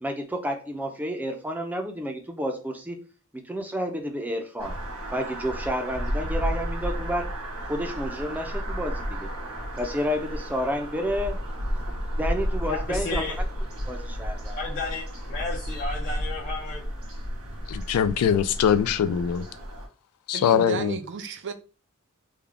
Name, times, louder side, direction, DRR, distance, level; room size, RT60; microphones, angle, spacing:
voice 1, 0.0-3.0 3.5-4.7 5.1-7.2 7.7-9.3 9.7-11.4 12.2-13.4 13.9-14.6, equal, 5° right, 0.5 m, -30 dB
sound 1, 4.6-19.9, equal, 80° right, 1.5 m, -32 dB
voice 2, 12.6-13.3 14.5-16.8, left 3 dB, 55° left, 1.0 m, -33 dB
voice 3, 17.7-19.4 20.3-21.0, left 8 dB, 75° left, 0.3 m, -22 dB
voice 4, 20.3-21.5, right 5 dB, 55° right, 0.5 m, -32 dB
3.6 x 2.3 x 3.4 m
head